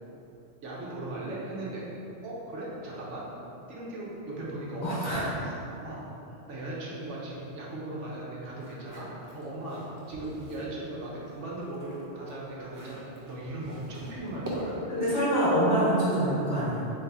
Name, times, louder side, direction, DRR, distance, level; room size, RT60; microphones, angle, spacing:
voice 1, 0.6-1.9 2.2-3.2 3.7-5.3 5.7-6.0 6.3-9.8 10.1-14.8, right 2 dB, 80° right, -5 dB, 1.2 m, -38 dB
voice 2, 4.8-5.3 14.9-17.0, right 1 dB, 70° left, -9 dB, 1.6 m, -25 dB
sound 1, 8.5-10.8 11.2-15.0, equal, 25° right, 0.5 m, -43 dB
4.0 x 3.4 x 3.5 m, 2.9 s
omnidirectional pair, 1.2 m